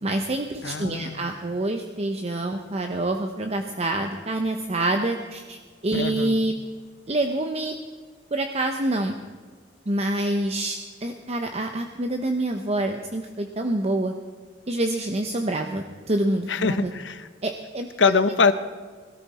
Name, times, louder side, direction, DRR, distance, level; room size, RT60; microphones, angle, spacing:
voice 1, 0.0-6.6 7.1-7.8 8.3-9.2 9.9-14.1 14.7-16.9 17.4-18.1, right 1 dB, 35° right, 5 dB, 0.8 m, -26 dB
voice 2, 0.6-1.3 5.9-6.5 16.5-17.3 18.0-18.5, left 4 dB, 80° left, 12 dB, 0.9 m, -23 dB
21.0 x 13.5 x 4.2 m, 1.5 s
head